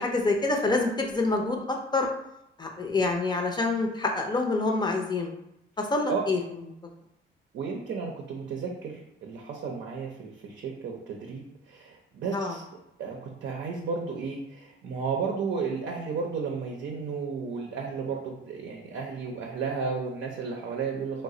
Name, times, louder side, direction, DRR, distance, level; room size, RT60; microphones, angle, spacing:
voice 1, 0.0-2.1 2.6-5.3 5.8-6.4 12.3-12.5, left 3 dB, 20° left, 2 dB, 0.6 m, -26 dB
voice 2, 7.5-12.6 13.0-21.2, right 5 dB, 65° right, 0 dB, 0.6 m, -33 dB
3.1 x 2.1 x 3.7 m, 0.82 s
cardioid pair, 90°, 20 cm